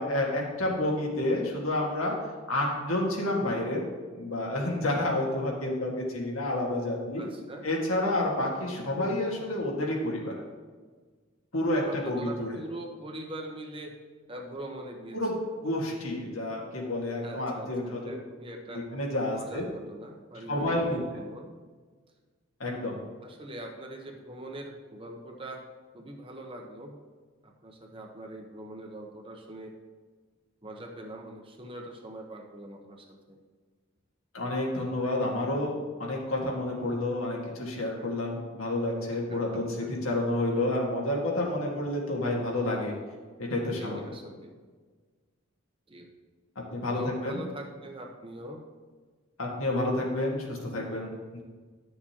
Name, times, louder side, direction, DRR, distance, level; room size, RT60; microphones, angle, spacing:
voice 1, 0.0-2.2 2.5-3.8 4.1-7.3 7.6-10.3 11.5-12.6 15.1-15.4 15.6-18.1 18.9-19.6 20.5-21.0 22.6-23.0 34.3-43.0 43.4-44.0 46.6-47.4 49.4-51.4, left 1 dB, 90° left, -2 dB, 1.8 m, -29 dB
voice 2, 7.2-7.7 11.9-13.9 14.3-15.2 15.5-15.6 17.2-18.8 19.3-21.5 23.2-25.6 25.9-26.9 27.4-29.7 30.6-33.4 39.3-39.9 43.8-44.5 45.9-46.1 46.9-48.6, right 1 dB, 25° right, 2 dB, 0.9 m, -42 dB
11.5 x 6.6 x 2.9 m, 1.5 s
head